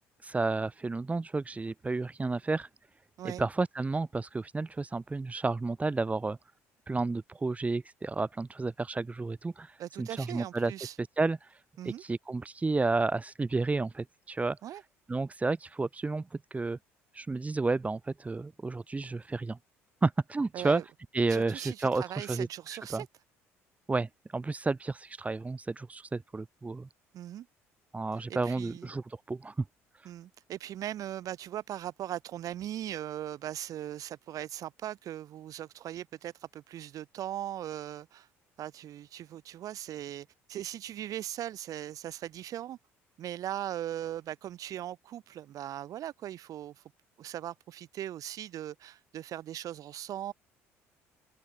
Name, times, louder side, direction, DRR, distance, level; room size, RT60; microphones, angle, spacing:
voice 1, 0.2-2.7 3.2-6.4 6.9-10.7 11.0-14.6 15.1-16.8 17.1-19.6 20.0-20.8 21.1-23.0 23.9-26.9 27.9-29.5 30.0-30.1, right 3 dB, 20° right, 1.3 m, -31 dB
voice 2, 9.8-10.9 11.8-12.0 14.6-14.8 20.5-20.8 21.3-23.1 27.1-27.5 28.3-28.9 30.0-38.3 38.6-42.8 43.2-46.8 47.2-50.3, right 12 dB, 60° right, 4.9 m, -39 dB
open air
hypercardioid pair, 60°, 7 cm